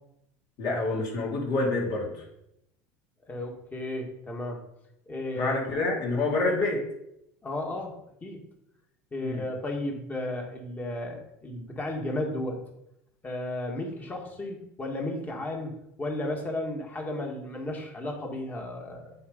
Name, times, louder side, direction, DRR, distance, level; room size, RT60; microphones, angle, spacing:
voice 1, 0.6-2.1 5.3-6.8 9.2-9.5, left 2 dB, 55° left, -2 dB, 2.9 m, -27 dB
voice 2, 3.3-4.6 5.1-5.6 7.4-7.9 8.2-8.4 9.1-12.6 13.2-15.7 16.0-19.1, left 1 dB, 20° left, 1 dB, 2.0 m, -34 dB
7.8 x 4.0 x 5.3 m, 0.81 s
hypercardioid pair, 90°, 8 cm